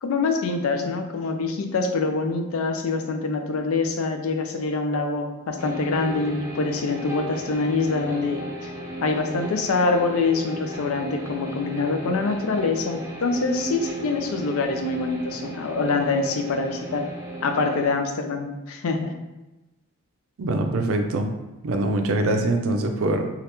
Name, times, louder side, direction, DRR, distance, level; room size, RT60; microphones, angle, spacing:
voice 1, 0.0-8.7 9.0-17.0 17.4-19.1, left 3 dB, 80° left, 5 dB, 0.4 m, -25 dB
sound 1, 5.6-17.8, right 1 dB, 15° right, 0.4 m, -35 dB
voice 2, 20.4-21.3 21.6-23.3, right 2 dB, 75° right, 5 dB, 0.4 m, -23 dB
2.9 x 2.4 x 3.2 m, 1.0 s
head